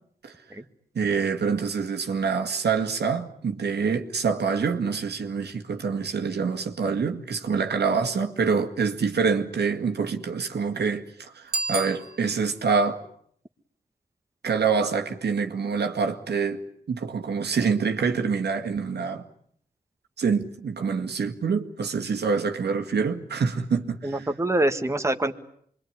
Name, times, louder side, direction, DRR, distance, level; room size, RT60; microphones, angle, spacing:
voice 1, 0.9-13.0 14.4-16.6 16.9-19.3 20.2-24.3, right 5 dB, 85° right, 2.1 m, -26 dB
Bicycle bell, 11.4-12.7, right 4 dB, 65° right, 2.4 m, -32 dB
voice 2, 24.0-25.3, right 1 dB, 15° right, 1.7 m, -25 dB
26.0 x 23.0 x 9.7 m
cardioid pair, 75°, 17 cm